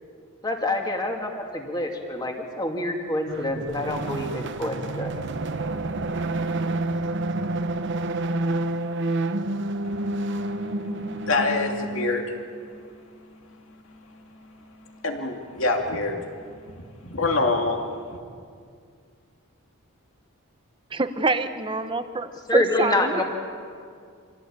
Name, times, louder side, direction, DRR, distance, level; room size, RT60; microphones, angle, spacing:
voice 1, 0.4-5.1 22.5-23.2, left 1 dB, 20° left, 2 dB, 2.6 m, -26 dB
sound 1, 3.3-12.5, right 2 dB, 55° right, 1.0 m, -29 dB
voice 2, 9.8-12.4 12.8-12.9 13.9-14.2 15.0-16.2 17.0-17.8 18.1-18.2, left 3 dB, 60° left, 2 dB, 2.6 m, -27 dB
voice 3, 20.9-23.2, right 3 dB, 25° right, 10 dB, 1.0 m, -26 dB
26.5 x 16.5 x 8.9 m, 2.2 s
head